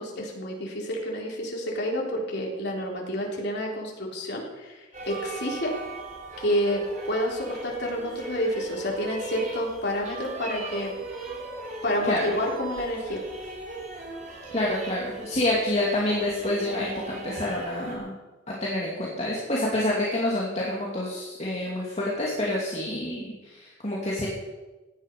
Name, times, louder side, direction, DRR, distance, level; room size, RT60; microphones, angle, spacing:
voice 1, 0.0-5.7 6.4-10.9 11.8-13.2, equal, 60° left, -1 dB, 3.7 m, -29 dB
sound 1, 4.9-18.0, right 2 dB, 40° right, 3.4 m, -38 dB
voice 2, 14.5-18.1 18.5-24.3, left 1 dB, 35° left, -5 dB, 2.6 m, -28 dB
17.0 x 11.0 x 5.4 m, 1.2 s
head